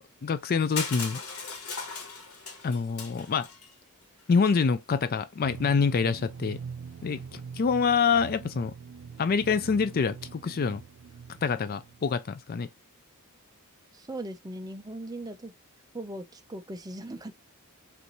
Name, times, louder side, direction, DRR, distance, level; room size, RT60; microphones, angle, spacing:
voice 1, 0.2-1.2 2.6-3.5 4.3-6.6 7.0-8.7 9.2-10.8 11.4-12.7, left 5 dB, 40° left, 0.4 m, -26 dB
Crushing, 0.8-3.7, left 5 dB, 85° left, 1.4 m, -37 dB
sound 1, 5.4-12.0, right 6 dB, 65° right, 0.4 m, -43 dB
voice 2, 13.9-15.5 15.9-17.3, right 1 dB, 15° right, 0.5 m, -39 dB
5.2 x 2.6 x 3.0 m
head